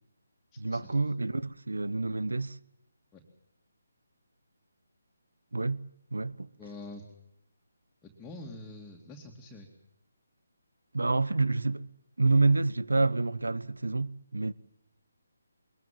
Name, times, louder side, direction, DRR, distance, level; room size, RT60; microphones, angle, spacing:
voice 1, 0.6-2.6 5.5-5.8 6.1-6.5 10.9-11.9 12.2-14.5, right 3 dB, 85° right, 1.0 m, -28 dB
voice 2, 6.6-7.0 8.0-9.7, left 2 dB, 10° left, 2.6 m, -45 dB
22.5 x 21.0 x 7.6 m
figure-of-eight pair, 150°, 0 cm